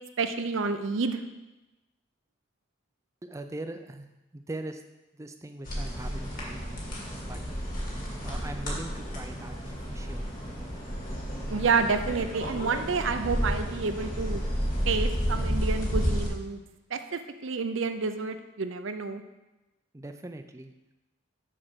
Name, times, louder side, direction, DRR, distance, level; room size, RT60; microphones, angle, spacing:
voice 1, 0.2-1.2 11.5-14.4 14.9-16.6 16.9-19.2, right 4 dB, 70° right, 8 dB, 0.6 m, -29 dB
voice 2, 3.2-4.1 4.3-4.8 5.1-6.6 7.3-7.5 7.9-9.6 9.9-10.3 19.9-20.7, right 2 dB, 15° right, 7 dB, 0.4 m, -41 dB
sound 1, 5.7-16.3, equal, 40° left, 1.9 m, -31 dB
6.6 x 5.0 x 6.0 m, 1.0 s
head